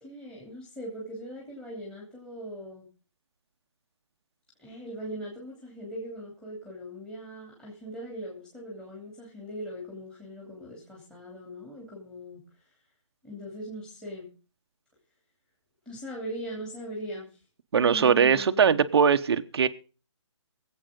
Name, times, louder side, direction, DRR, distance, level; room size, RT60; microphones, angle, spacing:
voice 1, 0.0-2.9 4.6-12.4 13.2-14.3 15.8-17.3 17.7-18.9, equal, 5° left, -2 dB, 2.9 m, -40 dB
voice 2, 17.7-19.7, right 6 dB, 55° right, 8 dB, 1.0 m, -21 dB
24.0 x 8.2 x 3.7 m, 0.36 s
hypercardioid pair, 160°, 16 cm